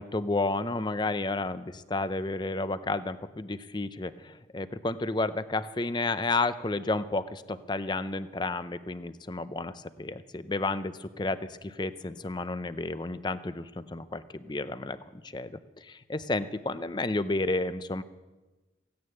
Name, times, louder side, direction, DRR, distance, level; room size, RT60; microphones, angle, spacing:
voice 1, 0.0-18.0, left 2 dB, 25° left, 13 dB, 0.6 m, -31 dB
16.0 x 9.6 x 8.9 m, 1.2 s
head